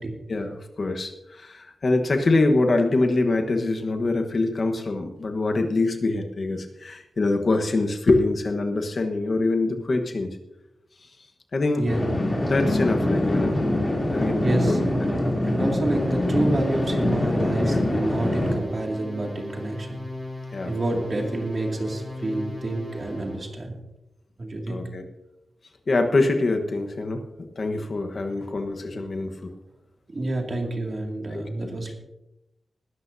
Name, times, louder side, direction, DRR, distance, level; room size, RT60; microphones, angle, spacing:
voice 1, 0.3-10.4 11.5-11.9 12.4-13.5 14.1-15.1 17.6-17.8 20.5-21.0 24.7-25.0 25.9-29.5 31.3-31.8, left 2 dB, 45° left, 4 dB, 1.2 m, -24 dB
sound 1, 11.9-18.5, left 1 dB, 20° left, 3.1 m, -24 dB
voice 2, 14.4-14.8 15.4-20.0 20.6-23.8 24.4-24.8 28.3-28.4 30.1-31.9, right 2 dB, 35° right, 1 dB, 2.4 m, -28 dB
sound 2, 15.9-23.5, left 1 dB, 5° right, 5.0 m, -38 dB
20.5 x 12.5 x 2.7 m, 0.91 s
wide cardioid pair, 175°, 0 cm